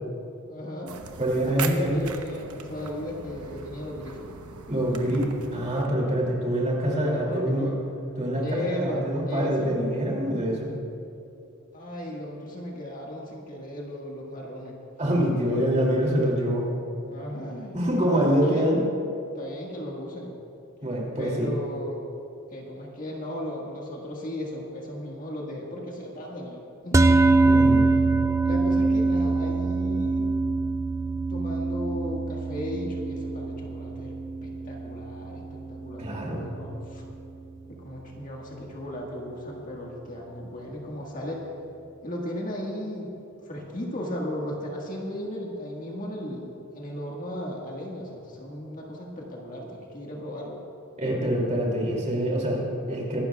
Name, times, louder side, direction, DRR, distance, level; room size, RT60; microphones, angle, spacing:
voice 1, 0.5-1.0 1.4-4.3 6.8-7.8 8.4-9.7 11.7-14.8 17.1-18.7 19.3-20.3 21.2-22.0 22.5-27.1 28.4-30.3 31.3-34.1 34.4-37.1 37.7-41.4 42.0-43.1 43.4-50.6, left 1 dB, 40° left, -2 dB, 1.7 m, -36 dB
sound 1, 0.9-5.9, right 5 dB, 85° right, 0.9 m, -39 dB
voice 2, 1.2-2.0 4.7-7.7 8.2-10.7 15.0-16.7 17.7-18.8 20.8-21.5 27.4-27.8 36.0-36.4 51.0-53.2, equal, 35° right, -2 dB, 2.7 m, -25 dB
sound 2, 26.9-37.4, right 3 dB, 15° right, 0.3 m, -24 dB
23.5 x 12.0 x 2.4 m, 2.8 s
head